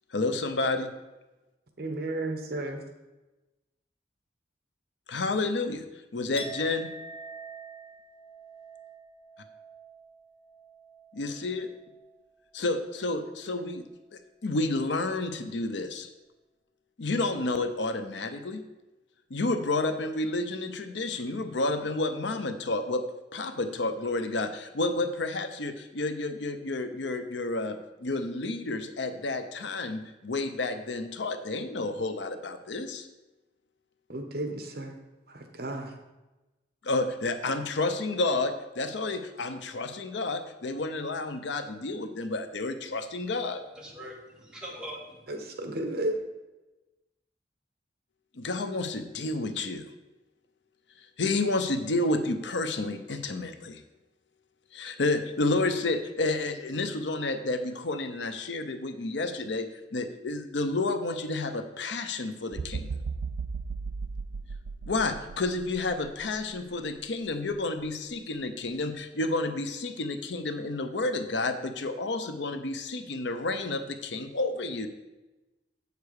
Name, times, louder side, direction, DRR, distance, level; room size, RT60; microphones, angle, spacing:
voice 1, 0.1-0.9 5.1-5.8 6.1-6.9 11.1-11.7 12.5-13.9 14.4-16.1 17.0-18.6 19.3-23.0 23.3-33.1 36.8-43.6 48.3-49.8 51.2-53.8 54.7-59.7 59.9-62.9 64.9-74.9, left 2 dB, 70° left, 8 dB, 0.7 m, -30 dB
voice 2, 1.8-2.8 34.1-35.0 35.3-36.0 45.3-46.1, right 1 dB, 55° right, 5 dB, 1.1 m, -33 dB
Chink clink, 6.4-12.3 12.6-13.0, right 2 dB, 30° left, 1.0 m, -46 dB
voice 3, 43.8-45.2, equal, 5° right, -3 dB, 1.8 m, -42 dB
sound 1, 62.5-66.5 67.1-67.2, right 4 dB, 70° right, 0.4 m, -36 dB
8.1 x 6.7 x 4.8 m, 1.1 s
head